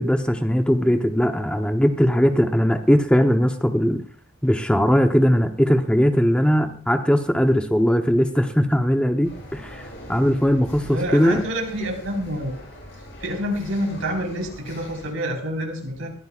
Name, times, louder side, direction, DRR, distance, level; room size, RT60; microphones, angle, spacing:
voice 1, 0.0-4.0 4.4-9.8 10.1-11.4, equal, 5° left, 5 dB, 0.8 m, -19 dB
sound 1, 9.2-15.1, left 1 dB, 55° left, 7.9 m, -42 dB
voice 2, 10.8-12.5 13.2-16.1, equal, 75° right, 2 dB, 4.2 m, -27 dB
21.0 x 14.0 x 2.4 m, 0.43 s
head